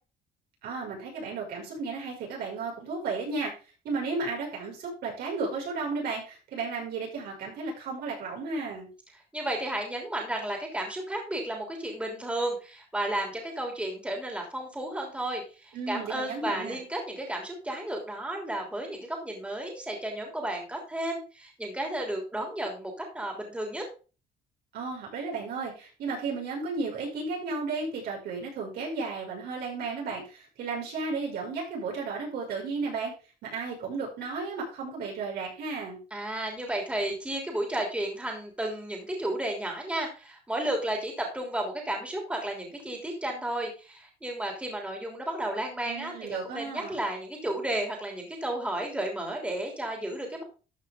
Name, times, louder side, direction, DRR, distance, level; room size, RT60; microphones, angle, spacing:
voice 1, 0.6-3.5 3.8-8.9 15.7-16.8 24.7-33.1 33.4-36.0 45.8-47.0, right 4 dB, 70° right, -3 dB, 5.9 m, -34 dB
voice 2, 9.3-23.8 36.1-50.4, right 1 dB, 5° right, 1 dB, 3.2 m, -33 dB
13.0 x 6.1 x 3.7 m, 0.34 s
cardioid pair, 110°, 17 cm